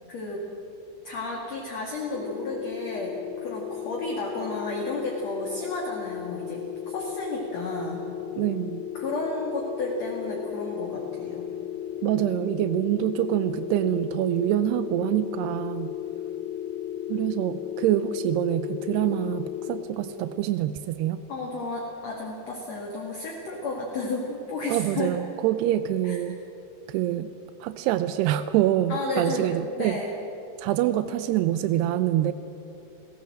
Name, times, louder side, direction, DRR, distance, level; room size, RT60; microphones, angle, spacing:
voice 1, 0.1-0.4 1.0-8.1 8.9-11.5 21.3-25.2 26.0-26.2 28.9-30.1, left 2 dB, 45° left, -1 dB, 2.7 m, -32 dB
sound 1, 2.1-19.8, left 11 dB, 70° left, 3.2 m, -35 dB
voice 2, 8.4-8.9 12.0-15.9 17.1-21.2 24.7-26.4 26.9-27.3 27.6-30.0 30.6-32.3, right 13 dB, 85° right, 11 dB, 2.4 m, -25 dB
29.5 x 16.5 x 7.7 m, 2.9 s
omnidirectional pair, 5.4 m